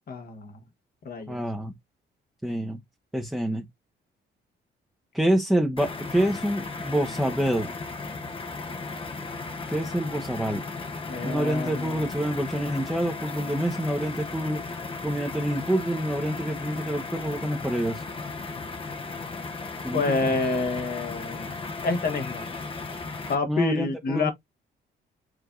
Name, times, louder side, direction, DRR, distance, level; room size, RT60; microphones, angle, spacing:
voice 1, 0.1-0.5 1.0-1.4 11.1-12.2 19.9-21.5 21.8-22.5 23.3-24.3, left 3 dB, 50° left, 1.2 m, -28 dB
voice 2, 1.3-1.7 2.4-2.8 3.1-3.7 5.1-7.7 9.7-10.6 11.2-14.6 15.0-18.0 19.8-20.3 23.5-24.3, right 1 dB, ahead, 0.9 m, -27 dB
sound 1, 5.8-23.4, left 3 dB, 25° left, 0.8 m, -36 dB
4.8 x 3.3 x 2.5 m
cardioid pair, 90°, 20 cm